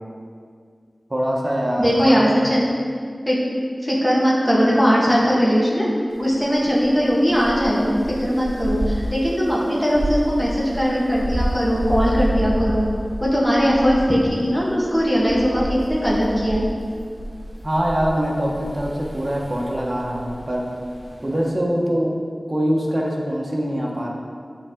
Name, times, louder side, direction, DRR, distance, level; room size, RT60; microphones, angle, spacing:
voice 1, 1.1-2.4 17.6-20.7 21.2-22.1 22.5-24.1, equal, 35° right, -2 dB, 1.2 m, -23 dB
voice 2, 1.8-2.7 3.2-3.4 3.8-5.9 6.2-12.9 13.2-16.6, equal, 15° left, -6 dB, 1.6 m, -19 dB
sound 1, 6.1-21.5, right 1 dB, 55° right, 1.2 m, -30 dB
8.4 x 4.0 x 3.7 m, 2.2 s
wide cardioid pair, 45°, 0 cm